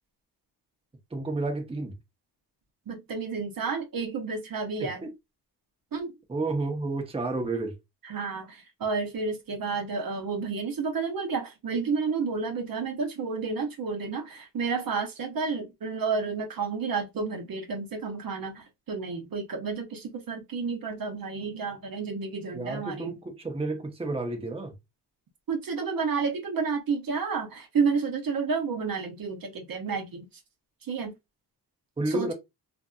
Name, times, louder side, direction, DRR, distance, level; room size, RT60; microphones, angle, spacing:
voice 1, 1.1-1.9 4.8-5.1 6.3-7.7 22.5-24.7 32.0-32.3, right 2 dB, 15° right, 0.7 m, -31 dB
voice 2, 2.9-5.0 5.9-6.1 8.0-23.1 25.5-30.3 30.8-31.1 32.1-32.3, right 5 dB, 55° right, 0.8 m, -31 dB
2.6 x 2.5 x 2.3 m
cardioid pair, 75°, 42 cm